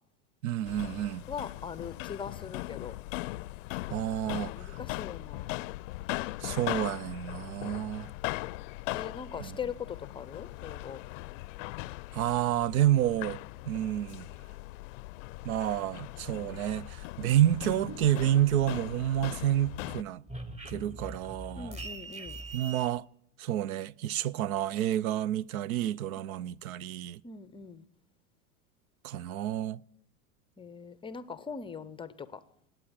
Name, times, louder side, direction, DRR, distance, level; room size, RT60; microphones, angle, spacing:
voice 1, 0.4-1.2 3.9-4.8 6.4-8.1 9.5-9.6 12.1-13.4 13.7-14.3 15.4-20.2 20.7-21.8 22.5-23.0 23.4-27.2 29.0-29.8, right 12 dB, 75° right, 0.6 m, -29 dB
sound 1, 0.7-20.0, left 20 dB, 60° left, 0.5 m, -39 dB
voice 2, 1.3-3.0 4.2-5.6 8.9-11.0 21.5-22.4 27.2-27.8 30.6-32.4, left 6 dB, 10° left, 0.5 m, -41 dB
sound 2, 17.6-19.2 19.5-22.9, right 2 dB, 15° right, 1.3 m, -43 dB
18.0 x 8.9 x 8.8 m
hypercardioid pair, 115°, 43 cm